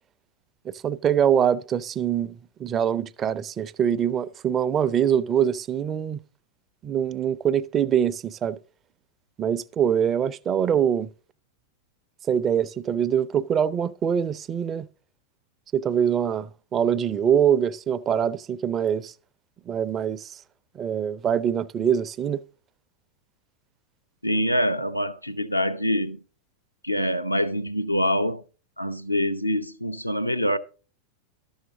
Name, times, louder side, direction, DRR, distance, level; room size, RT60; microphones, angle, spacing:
voice 1, 0.6-6.2 6.8-8.6 9.4-11.1 12.3-14.9 15.7-19.1 19.7-20.4 20.7-22.4, right 8 dB, 25° right, 0.5 m, -24 dB
voice 2, 24.2-26.2 26.8-28.4 28.8-30.6, equal, 85° left, 0.6 m, -25 dB
12.5 x 7.2 x 3.8 m
figure-of-eight pair, 90°, 0 cm